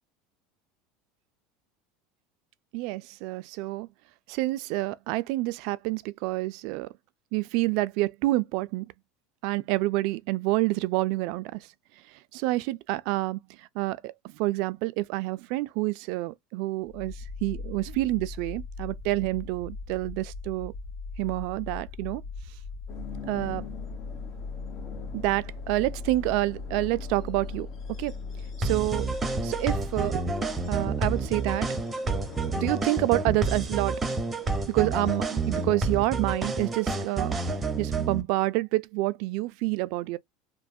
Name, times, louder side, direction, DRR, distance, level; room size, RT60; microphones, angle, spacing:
voice 1, 2.7-3.9 4.3-6.9 7.3-8.9 9.4-11.7 12.3-13.4 13.8-20.7 21.2-22.2 23.2-23.7 25.1-27.7 28.0-28.1 28.6-29.1 29.4-30.2 30.7-31.7 32.6-34.0 34.7-37.3 37.8-40.2, right 19 dB, 65° right, 0.3 m, -28 dB
sound 1, 16.8-31.6, left 4 dB, 70° left, 1.1 m, -39 dB
sound 2, 22.9-35.6, left 7 dB, 45° left, 1.0 m, -47 dB
sound 3, 28.6-38.2, right 3 dB, 20° right, 0.6 m, -29 dB
3.1 x 2.1 x 2.6 m
supercardioid pair, 105°, 0 cm